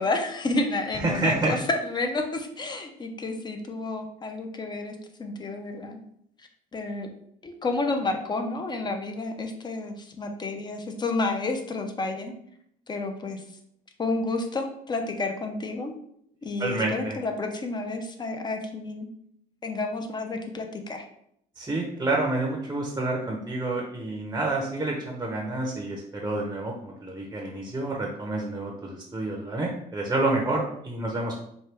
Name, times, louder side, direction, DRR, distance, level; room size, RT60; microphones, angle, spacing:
voice 1, 0.0-6.0 6.4-7.1 7.4-12.3 12.9-13.4 14.0-15.9 16.4-19.1 19.6-21.0, left 2 dB, 25° left, 5 dB, 0.6 m, -30 dB
voice 2, 1.0-1.5 16.6-17.2 21.6-31.3, right 2 dB, 15° right, 0 dB, 0.7 m, -28 dB
4.4 x 2.2 x 3.4 m, 0.71 s
cardioid pair, 110°, 17 cm